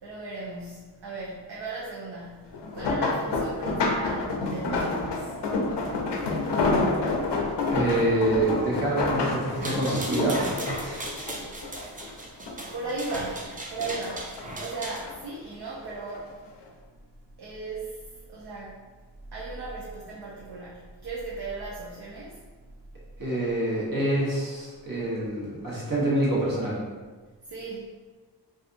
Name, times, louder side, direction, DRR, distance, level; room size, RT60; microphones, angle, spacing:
voice 1, 0.0-5.5 11.5-16.4 17.4-18.8 19.3-22.8 27.4-27.9, right 3 dB, 65° right, -5 dB, 0.6 m, -37 dB
sound 1, 2.5-12.1 12.5-13.4 13.8-15.1 15.9-16.2 16.6-16.7, left 3 dB, 70° left, 0.5 m, -28 dB
voice 2, 7.7-11.1 23.2-26.8, right 1 dB, 50° right, -6 dB, 1.1 m, -26 dB
sound 2, 9.5-15.1, right 1 dB, 20° right, 0.4 m, -37 dB
2.5 x 2.4 x 2.5 m, 1.4 s
cardioid pair, 50°, 43 cm